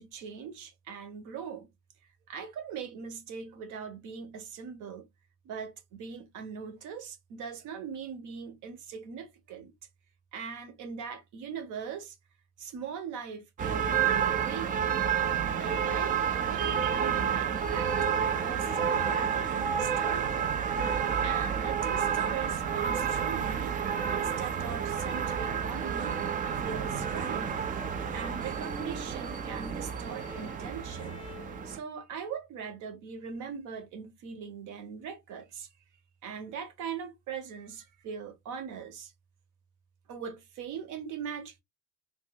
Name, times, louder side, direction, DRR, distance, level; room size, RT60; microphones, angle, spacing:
voice 1, 0.0-1.7 2.3-5.1 5.4-9.7 10.3-12.2 12.6-14.8 15.5-23.8 24.1-26.2 26.6-27.5 28.1-31.2 31.6-35.7 36.2-39.1 40.1-41.6, right 6 dB, 45° right, 0.9 m, -41 dB
sound 1, 13.6-31.8, right 7 dB, 20° right, 0.4 m, -30 dB
sound 2, 26.7-31.7, left 1 dB, 15° left, 0.7 m, -48 dB
2.5 x 2.0 x 3.8 m
hypercardioid pair, 75°, 41 cm